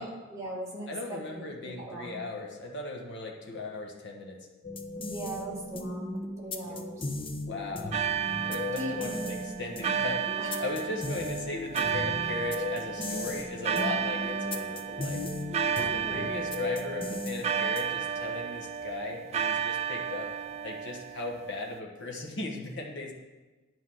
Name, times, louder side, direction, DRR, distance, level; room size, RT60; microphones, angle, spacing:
voice 1, 0.0-2.2 5.1-7.1 8.8-9.0 10.4-10.6 15.8-16.4, right 1 dB, 15° right, -5 dB, 2.3 m, -39 dB
voice 2, 0.9-4.5 4.9-5.0 6.7-6.8 7.5-15.3 15.6-23.1, left 2 dB, 60° left, 1 dB, 1.3 m, -38 dB
sound 1, 4.6-18.1, left 2 dB, 25° left, 0.8 m, -37 dB
sound 2, 7.9-21.8, right 7 dB, 30° right, 0.4 m, -33 dB
9.8 x 5.2 x 7.7 m, 1.2 s
head